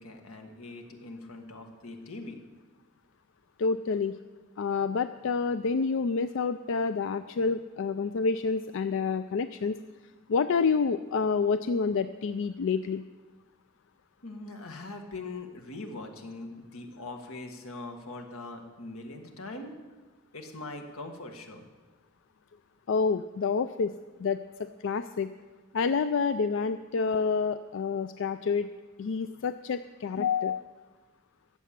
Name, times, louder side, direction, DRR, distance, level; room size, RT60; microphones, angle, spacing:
voice 1, 0.0-2.4 14.2-19.7 20.3-21.6 27.1-27.3, left 2 dB, 85° left, 4 dB, 1.7 m, -42 dB
voice 2, 3.6-4.1 4.6-9.8 10.3-13.0 22.9-23.9 24.2-24.4 24.8-25.3 25.7-28.7 29.0-30.9, left 5 dB, 65° left, 11 dB, 0.4 m, -28 dB
13.5 x 8.4 x 7.4 m, 1.3 s
head